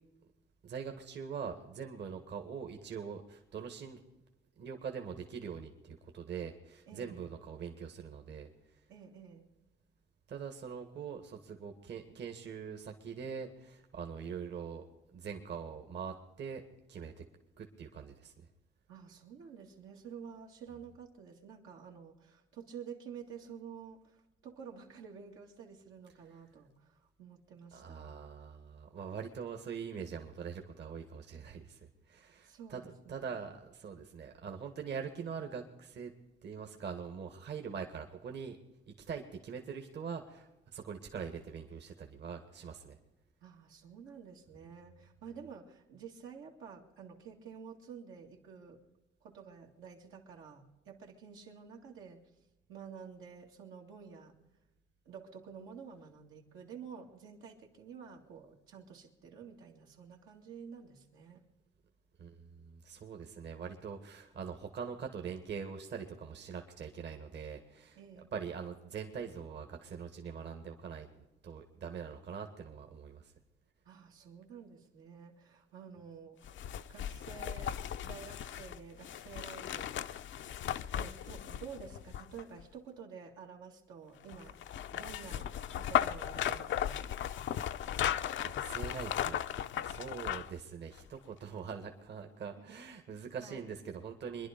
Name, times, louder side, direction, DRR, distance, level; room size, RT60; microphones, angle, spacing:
voice 1, 0.6-4.0 4.6-8.5 10.3-14.9 15.1-16.6 16.9-17.2 17.6-18.3 27.7-36.1 36.4-38.6 38.9-43.0 62.2-71.1 71.4-73.3 87.9-89.4 89.8-94.5, right 6 dB, 60° right, 4 dB, 1.8 m, -43 dB
voice 2, 8.9-9.5 18.9-28.1 32.4-33.4 43.4-48.8 49.2-52.3 52.7-54.4 55.1-61.4 68.0-68.3 73.8-80.2 80.9-84.6 84.9-85.5 85.8-87.1 92.6-92.8 93.4-93.6, right 6 dB, 90° right, 0 dB, 2.2 m, -50 dB
sound 1, 76.4-82.6 84.3-90.6 91.0-91.1, left 10 dB, 70° left, 0.6 m, -36 dB
24.5 x 11.0 x 5.2 m, 1.0 s
cardioid pair, 90°, 20 cm